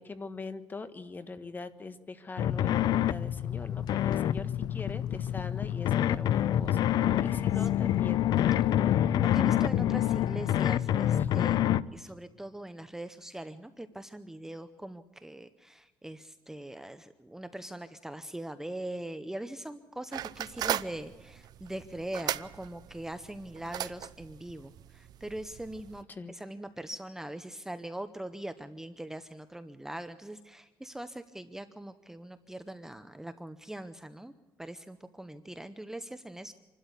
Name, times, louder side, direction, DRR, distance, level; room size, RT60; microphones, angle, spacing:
voice 1, 0.0-8.2 11.1-11.4 26.1-26.4, left 3 dB, 25° left, 11 dB, 1.4 m, -42 dB
sound 1, 2.4-11.8, left 11 dB, 65° left, 0.5 m, -27 dB
voice 2, 9.2-11.6 11.9-34.3 34.6-36.5, right 1 dB, 5° right, 10 dB, 0.7 m, -41 dB
sound 2, 20.1-26.0, right 11 dB, 65° right, 0.6 m, -38 dB
27.0 x 12.5 x 8.2 m, 1.3 s
cardioid pair, 120°, 7 cm